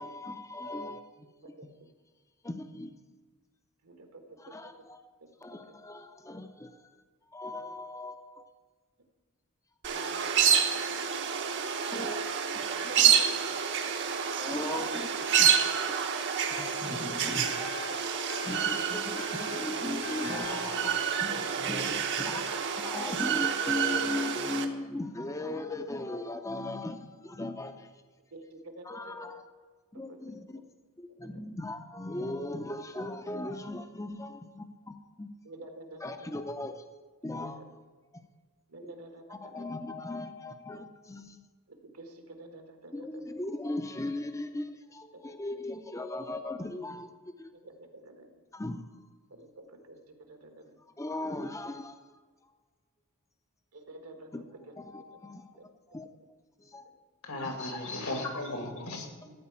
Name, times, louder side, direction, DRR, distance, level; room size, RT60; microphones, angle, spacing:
voice 1, 0.0-1.7 2.4-2.9 4.4-5.1 5.4-7.0 7.3-8.5 11.9-12.2 12.8-13.2 14.4-15.5 15.9-16.0 16.5-17.8 18.1-28.0 28.8-29.5 29.9-30.6 31.0-35.3 36.0-36.8 37.2-37.8 38.1-38.2 38.8-38.9 39.3-41.4 42.9-47.1 47.4-47.5 48.5-48.9 50.8-52.0 54.3-54.4 54.7-55.6 55.9-56.1 56.6-56.9 57.4-57.6, left 2 dB, 15° left, 8 dB, 0.5 m, -38 dB
voice 2, 3.8-4.5 7.5-7.7 9.9-11.0 11.2-11.3 12.7-13.3 17.6-17.9 21.9-22.0 28.3-29.1 30.1-30.2 35.4-36.0 38.7-39.7 41.7-43.1 45.2-45.3 47.6-48.3 49.3-50.0 50.3-50.8 53.7-54.3 58.0-58.3, right 2 dB, 75° right, 4 dB, 1.6 m, -49 dB
sound 1, 9.8-24.7, right 7 dB, 55° right, 0.9 m, -28 dB
sound 2, 16.2-22.2, left 7 dB, 60° left, 0.7 m, -45 dB
voice 3, 57.2-59.3, left 2 dB, 75° left, 3 dB, 2.2 m, -36 dB
13.0 x 4.7 x 8.4 m, 1.4 s
head